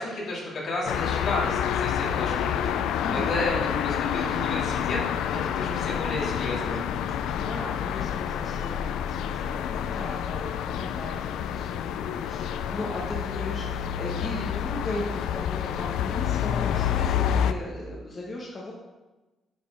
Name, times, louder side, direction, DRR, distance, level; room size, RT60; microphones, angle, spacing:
voice 1, 0.0-5.0 5.3-6.8, left 2 dB, 60° left, -4 dB, 2.5 m, -32 dB
sound 1, 0.9-17.5, left 9 dB, 85° left, 0.4 m, -28 dB
voice 2, 3.0-3.3 7.1-18.7, left 2 dB, 35° left, -3 dB, 1.4 m, -37 dB
10.0 x 4.3 x 4.8 m, 1.2 s
cardioid pair, 90°, 0 cm